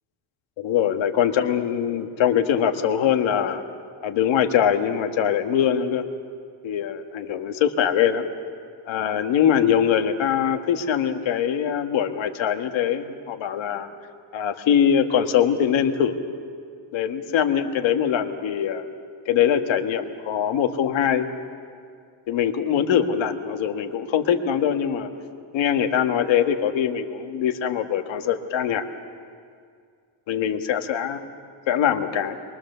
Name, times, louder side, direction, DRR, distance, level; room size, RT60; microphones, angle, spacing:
voice 1, 0.6-3.6 4.0-6.0 6.6-8.2 8.9-13.9 14.3-16.2 16.9-18.8 19.2-21.3 22.3-25.1 25.5-28.9 30.3-31.2 31.7-32.4, left 8 dB, 65° left, 6 dB, 1.6 m, -22 dB
26.5 x 23.0 x 6.8 m, 2.2 s
cardioid pair, 165°, 49 cm